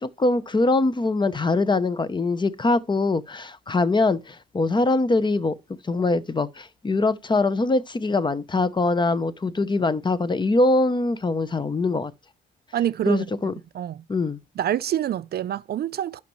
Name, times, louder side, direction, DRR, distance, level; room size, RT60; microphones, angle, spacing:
voice 1, 0.0-5.5 5.8-12.1 13.1-13.5 14.1-14.4, left 2 dB, 25° left, 0.6 m, -23 dB
voice 2, 12.7-13.3 13.7-14.0 14.6-16.2, right 11 dB, 55° right, 0.4 m, -26 dB
11.5 x 5.7 x 3.1 m
cardioid pair, 90°, 20 cm